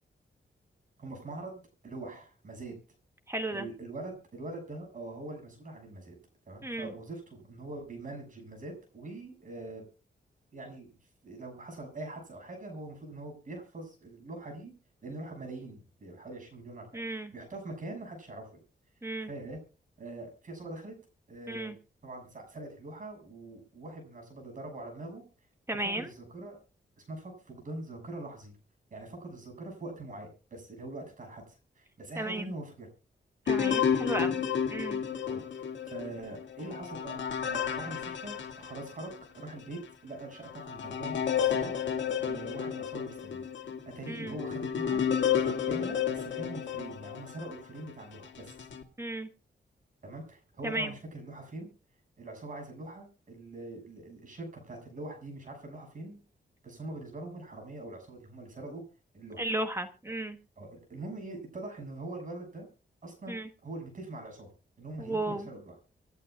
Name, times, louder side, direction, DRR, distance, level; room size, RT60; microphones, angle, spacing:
voice 1, 1.0-2.7 3.5-6.1 6.5-9.8 10.5-10.9 11.2-14.7 15.0-18.5 19.3-19.6 20.0-20.9 21.3-21.7 22.0-25.2 25.8-26.6 27.0-28.6 28.9-32.9 34.1-34.3 35.2-35.4 35.9-41.7 42.2-45.1 45.4-48.5 50.0-51.7 52.2-56.2 56.6-58.8 59.1-59.4 60.6-62.7 63.0-64.5 64.8-65.7, right 2 dB, 45° right, 2 dB, 6.5 m, -43 dB
voice 2, 3.3-3.7 6.6-6.9 16.9-17.3 19.0-19.3 21.5-21.8 25.7-26.1 32.2-32.4 33.5-35.0 44.1-44.3 49.0-49.3 50.6-50.9 59.4-60.4 63.3-63.5 65.0-65.5, right 1 dB, 15° right, 7 dB, 1.2 m, -34 dB
sound 1, 33.5-39.2 39.8-39.9 40.4-47.6 48.2-48.8, left 8 dB, 85° left, 2.0 m, -32 dB
26.5 x 10.5 x 2.4 m, 0.33 s
wide cardioid pair, 160°, 19 cm